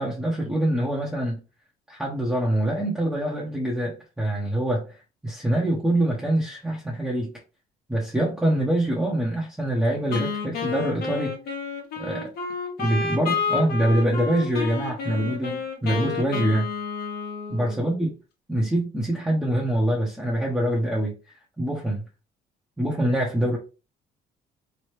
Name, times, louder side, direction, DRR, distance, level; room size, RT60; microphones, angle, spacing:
voice 1, 0.0-1.4 1.9-7.3 7.9-11.3 12.0-12.3 12.8-16.7 17.5-18.1 18.5-21.1 21.6-22.0 22.8-23.6, right 1 dB, 5° right, 0.7 m, -25 dB
Wind instrument woodwind instrument, 10.1-18.0, left 5 dB, 70° left, 1.2 m, -30 dB
3.2 x 2.1 x 3.0 m
cardioid pair, 110°, 17 cm